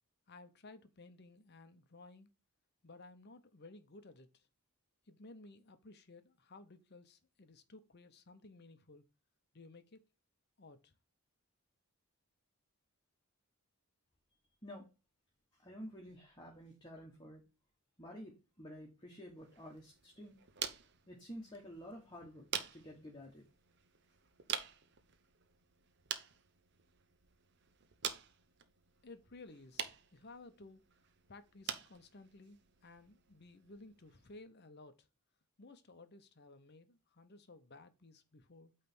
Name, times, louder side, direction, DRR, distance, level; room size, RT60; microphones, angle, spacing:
voice 1, 0.3-2.3 2.8-4.5 5.1-9.0 9.5-10.0 10.6-10.9 29.0-30.8 31.3-35.1 35.6-38.7, left 2 dB, 50° left, 0.8 m, -56 dB
voice 2, 15.5-17.4 18.0-20.4 21.1-23.5, equal, 20° left, 1.4 m, -51 dB
sound 1, 19.4-34.4, right 8 dB, 50° right, 0.8 m, -47 dB
8.7 x 3.3 x 6.0 m
head